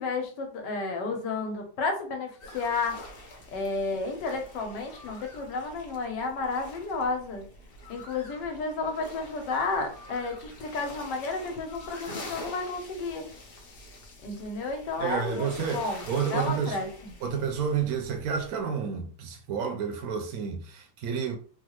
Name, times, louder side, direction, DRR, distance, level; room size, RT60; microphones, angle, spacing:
voice 1, 0.0-3.0 3.5-7.4 7.9-13.2 14.2-17.2, left 3 dB, 90° left, 1.5 m, -32 dB
sound 1, 2.4-18.6, left 1 dB, 55° left, 0.6 m, -46 dB
voice 2, 15.0-16.8 17.2-21.4, right 6 dB, 70° right, 0.9 m, -30 dB
3.4 x 2.3 x 3.0 m
omnidirectional pair, 1.8 m